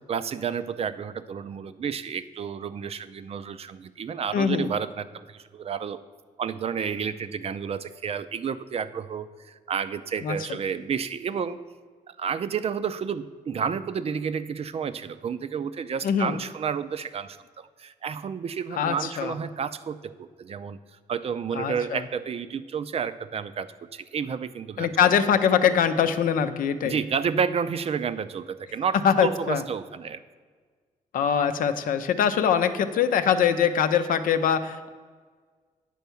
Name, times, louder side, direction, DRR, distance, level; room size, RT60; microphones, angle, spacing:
voice 1, 0.0-6.0 6.4-11.6 12.1-20.8 21.1-25.2 26.8-30.2, right 7 dB, 45° right, 12 dB, 0.4 m, -31 dB
voice 2, 4.3-4.7 10.2-10.4 16.0-16.3 18.7-19.3 21.5-22.0 24.8-27.0 29.0-29.6 31.1-34.9, left 8 dB, 80° left, 10 dB, 0.6 m, -23 dB
9.2 x 4.6 x 6.9 m, 1.5 s
cardioid pair, 95°, 14 cm